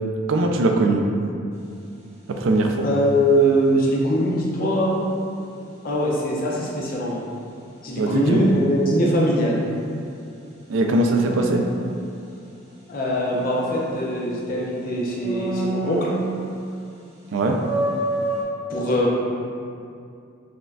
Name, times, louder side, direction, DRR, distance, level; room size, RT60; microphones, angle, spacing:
voice 1, 0.3-1.1 2.3-2.9 8.0-8.5 10.7-11.7 17.3-17.6, right 2 dB, 80° right, 2 dB, 0.4 m, -20 dB
sound 1, 1.5-1.9 11.2-12.6 13.0-14.7 15.2-16.7 17.1-17.2 17.6-18.4, right 1 dB, 40° right, 0.8 m, -29 dB
voice 2, 2.8-5.0 5.8-7.2 7.8-9.6 12.9-16.1 18.7-19.1, equal, 50° left, -3 dB, 0.6 m, -22 dB
6.1 x 2.2 x 2.4 m, 2.4 s
head